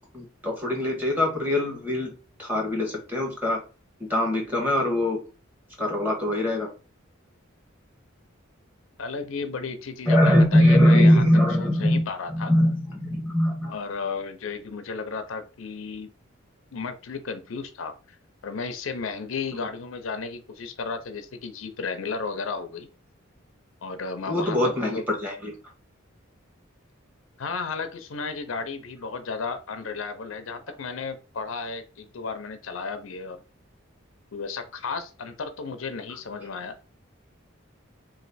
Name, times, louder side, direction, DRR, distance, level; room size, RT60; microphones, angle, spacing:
voice 1, 0.1-3.6 4.0-5.2 5.8-6.7 10.1-12.0 12.3-13.7 24.3-25.6, left 1 dB, 10° right, 0 dB, 1.3 m, -22 dB
voice 2, 9.0-11.2 11.6-12.5 13.7-16.1 16.7-18.2 18.4-22.9 23.8-25.0 27.4-33.4 34.3-36.8, left 4 dB, 75° left, 9 dB, 0.6 m, -33 dB
3.1 x 2.5 x 4.1 m, 0.32 s
head